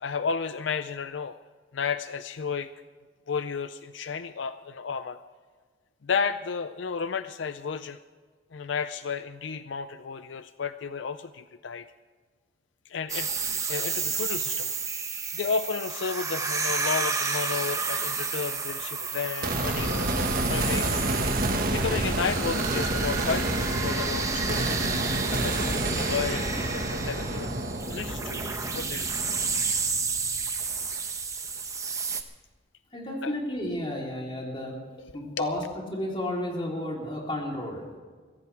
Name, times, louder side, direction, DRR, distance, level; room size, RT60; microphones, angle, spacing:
voice 1, 0.0-1.4 1.7-2.7 3.3-5.2 6.0-8.0 8.5-11.9 12.9-14.7 15.3-21.0 21.7-25.0 25.3-25.6 25.9-27.5 27.9-29.2 33.2-33.3 35.0-35.5, left 5 dB, 75° left, 11 dB, 0.5 m, -32 dB
sound 1, 13.1-32.2, right 4 dB, 15° right, 1.0 m, -31 dB
sound 2, 19.4-30.8, right 2 dB, 50° right, 1.7 m, -29 dB
voice 2, 32.9-34.8 35.1-37.9, left 1 dB, 25° left, -2 dB, 3.6 m, -32 dB
23.0 x 15.5 x 3.5 m, 1.5 s
head